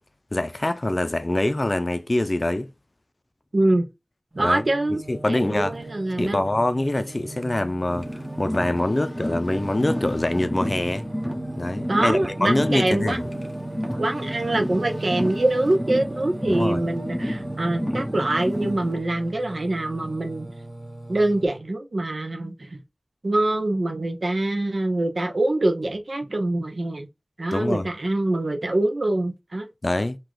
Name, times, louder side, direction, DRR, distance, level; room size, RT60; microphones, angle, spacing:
voice 1, 0.3-2.7 4.4-4.6 5.1-5.8 6.2-8.1 8.4-11.1 11.6-13.2 16.5-16.8 27.5-27.9 29.8-30.2, left 1 dB, 40° left, 0.5 m, -24 dB
voice 2, 3.5-3.8 4.3-6.4 11.9-13.2 14.0-20.5 21.1-22.8 23.2-27.1 27.4-29.7, right 1 dB, 70° right, 1.0 m, -24 dB
Singing, 4.3-21.5, right 2 dB, 35° right, 1.0 m, -37 dB
Car, 7.9-19.0, equal, 10° left, 1.0 m, -31 dB
3.8 x 2.9 x 4.8 m
wide cardioid pair, 55°, 0 cm